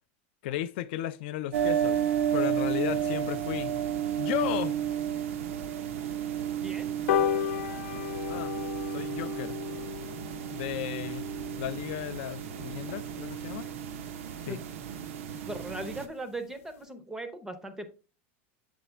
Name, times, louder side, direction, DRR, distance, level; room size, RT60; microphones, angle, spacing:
voice 1, 0.4-2.0 2.3-3.8 4.2-4.8 8.3-8.6 8.9-9.6 10.5-11.3 11.6-13.7 14.4-14.6, left 13 dB, 55° left, 0.4 m, -34 dB
sound 1, 1.5-16.1, right 9 dB, 80° right, 0.6 m, -32 dB
voice 2, 6.6-6.9 14.5-14.6 14.9-15.1 15.5-17.9, right 2 dB, 5° right, 0.5 m, -38 dB
sound 2, 7.1-13.8 14.2-14.3 14.7-14.8 15.0-15.1 15.4-15.5 15.8-16.1 16.5-16.6, left 10 dB, 80° left, 0.7 m, -34 dB
7.0 x 4.1 x 3.3 m
supercardioid pair, 175°, 7 cm